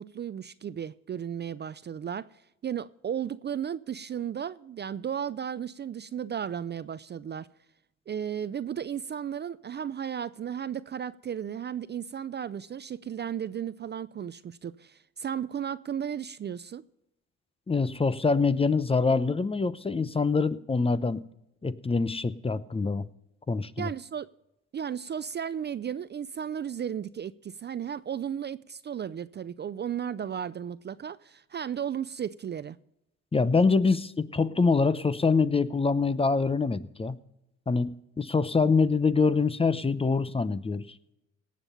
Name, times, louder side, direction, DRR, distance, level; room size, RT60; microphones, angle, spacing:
voice 1, 0.0-7.5 8.1-16.8 23.8-24.3 24.7-32.8, right 8 dB, 35° right, 0.4 m, -34 dB
voice 2, 17.7-21.2 21.6-23.1 23.5-23.9 33.3-37.2 37.7-40.8, left 4 dB, 20° left, 0.7 m, -25 dB
18.5 x 7.5 x 5.4 m
cardioid pair, 90°, 30 cm